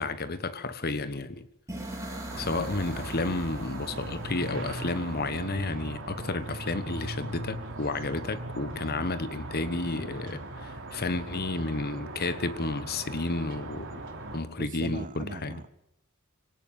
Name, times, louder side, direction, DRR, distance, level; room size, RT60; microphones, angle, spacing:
voice 1, 0.0-1.5 2.4-14.0 14.3-15.6, left 2 dB, 45° left, 13 dB, 1.3 m, -31 dB
sound 1, 1.7-5.6, right 1 dB, 15° right, 4.7 m, -41 dB
sound 2, 2.3-14.4, right 2 dB, 60° right, 3.2 m, -40 dB
Bowed string instrument, 2.4-6.6, right 1 dB, 10° left, 7.6 m, -61 dB
voice 2, 14.6-15.7, right 3 dB, 35° right, 15 dB, 0.8 m, -39 dB
24.5 x 18.0 x 7.2 m, 0.79 s
head